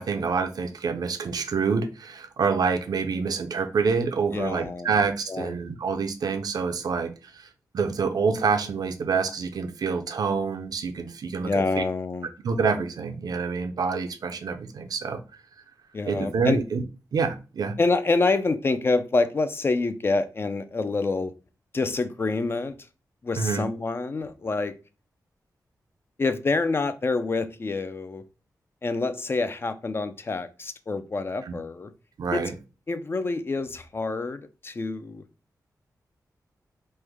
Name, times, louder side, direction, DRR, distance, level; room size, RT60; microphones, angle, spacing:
voice 1, 0.0-7.5 7.7-11.8 12.4-15.2 16.1-16.8 17.1-17.7 23.4-23.6 31.4-31.5 32.2-32.5, right 5 dB, 70° right, 8 dB, 0.5 m, -27 dB
voice 2, 4.3-4.9 5.3-5.5 11.4-12.3 15.9-16.6 17.8-21.3 21.7-22.7 23.2-24.7 26.2-28.2 28.8-31.9 32.3-32.5 32.9-35.2, left 3 dB, 35° left, 11 dB, 0.3 m, -27 dB
3.1 x 2.1 x 3.4 m, 0.32 s
wide cardioid pair, 100°, 7 cm